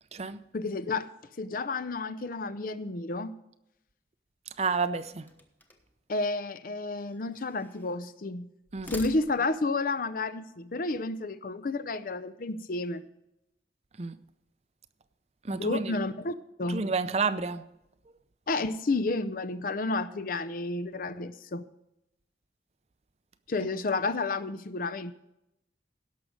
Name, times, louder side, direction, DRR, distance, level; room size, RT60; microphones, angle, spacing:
voice 1, 0.5-1.1 1.4-3.4 6.1-8.5 8.9-13.0 15.5-16.8 18.5-21.6 23.5-25.1, left 3 dB, 55° left, 0.6 m, -31 dB
voice 2, 4.6-5.3 8.7-8.9 14.0-14.2 15.4-16.0 16.7-17.7, right 4 dB, 40° right, 0.5 m, -30 dB
sound 1, 5.3-6.0 6.9-8.0 8.6-9.7, left 1 dB, 10° left, 1.1 m, -47 dB
17.0 x 6.3 x 5.2 m
head